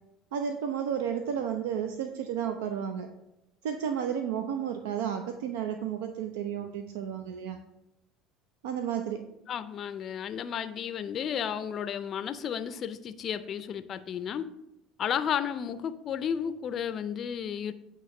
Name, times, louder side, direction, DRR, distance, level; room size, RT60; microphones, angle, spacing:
voice 1, 0.3-3.1 3.6-7.6 8.6-9.2, right 8 dB, 85° right, 6 dB, 0.4 m, -32 dB
voice 2, 9.5-14.5 15.0-17.7, left 8 dB, 45° left, 12 dB, 0.4 m, -33 dB
8.2 x 2.9 x 5.3 m, 0.88 s
supercardioid pair, 95°, 0 cm